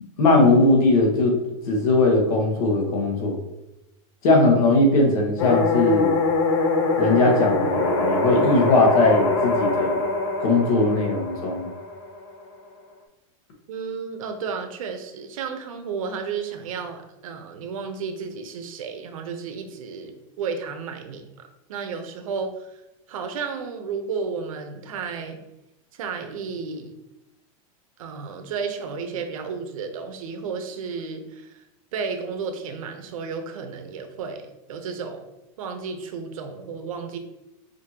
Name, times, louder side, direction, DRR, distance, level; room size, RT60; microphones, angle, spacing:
voice 1, 0.2-1.4 1.7-3.4 4.2-6.1 7.0-10.0 10.4-11.7, left 2 dB, 75° left, 1 dB, 1.3 m, -19 dB
sound 1, 5.4-12.3, left 3 dB, 45° left, 0.6 m, -23 dB
voice 2, 13.7-22.8 23.1-25.4 25.9-26.9 28.0-31.6 31.9-35.3 35.6-37.2, right 5 dB, 75° right, 6 dB, 0.7 m, -32 dB
5.1 x 2.7 x 2.8 m, 0.92 s
supercardioid pair, 180°, 18 cm